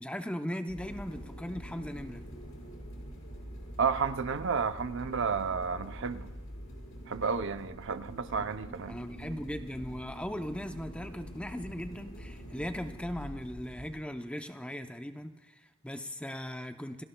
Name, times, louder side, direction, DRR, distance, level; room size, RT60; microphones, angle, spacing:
voice 1, 0.0-2.2 8.9-17.0, equal, 5° left, 0.6 m, -38 dB
sound 1, 0.7-13.9, equal, 75° left, 5.9 m, -45 dB
voice 2, 3.8-6.3 7.1-9.0, right 5 dB, 60° right, 0.6 m, -31 dB
29.0 x 18.0 x 2.2 m
head